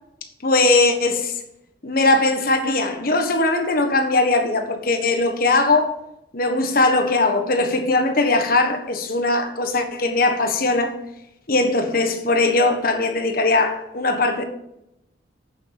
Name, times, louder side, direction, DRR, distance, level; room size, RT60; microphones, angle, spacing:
voice 1, 0.4-1.3 1.8-5.9 6.3-10.9 11.5-14.4, left 2 dB, 50° left, 1.4 m, -20 dB
8.2 x 7.1 x 5.1 m
head